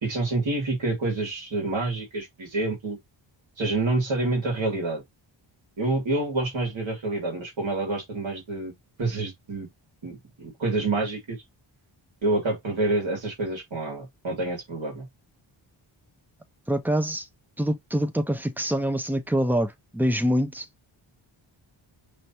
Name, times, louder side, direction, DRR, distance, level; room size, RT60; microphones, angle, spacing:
voice 1, 0.0-3.0 3.6-5.0 5.8-8.7 9.0-9.7 10.0-11.4 12.2-15.1, right 2 dB, 70° right, 2.5 m, -27 dB
voice 2, 16.7-17.3 17.6-20.7, equal, 5° right, 0.4 m, -25 dB
5.2 x 3.3 x 2.9 m
wide cardioid pair, 175°, 47 cm